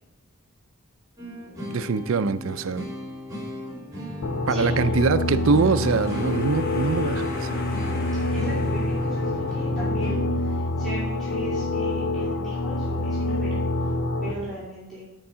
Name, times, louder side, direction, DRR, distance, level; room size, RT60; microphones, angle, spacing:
sound 1, 1.2-10.3, left 1 dB, 15° right, 2.3 m, -36 dB
voice 1, 1.7-2.9 4.5-7.6, right 5 dB, 70° right, 13 dB, 0.5 m, -24 dB
sound 2, 4.2-14.3, left 2 dB, 75° left, 1.0 m, -26 dB
sound 3, 5.2-9.9, left 2 dB, 45° left, 1.2 m, -41 dB
voice 2, 8.3-13.6 14.2-15.0, right 1 dB, ahead, -10 dB, 2.7 m, -37 dB
10.5 x 4.7 x 5.5 m, 0.84 s
head